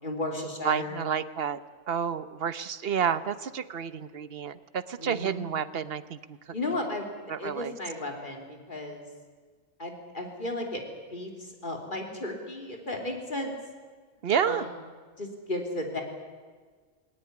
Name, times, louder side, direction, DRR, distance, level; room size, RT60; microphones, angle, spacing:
voice 1, 0.0-1.0 5.0-5.4 6.5-9.1 9.8-13.5 14.4-14.7 15.2-16.0, left 1 dB, 40° left, 2 dB, 3.6 m, -34 dB
voice 2, 0.6-1.6 1.9-6.4 7.3-7.7 14.2-14.7, right 7 dB, 55° right, 14 dB, 1.0 m, -30 dB
20.0 x 19.0 x 9.8 m, 1.5 s
omnidirectional pair, 1.3 m